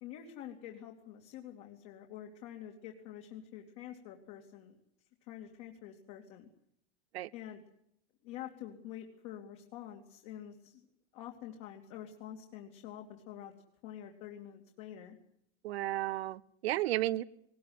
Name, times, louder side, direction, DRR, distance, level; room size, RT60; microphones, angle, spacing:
voice 1, 0.0-4.8 5.2-6.5 7.3-7.6 8.2-10.9 11.1-13.5 13.8-15.2, left 10 dB, 45° left, 1 dB, 2.9 m, -47 dB
voice 2, 15.6-17.2, right 15 dB, 80° right, 15 dB, 1.1 m, -33 dB
20.0 x 19.5 x 9.7 m, 0.71 s
supercardioid pair, 165°, 31 cm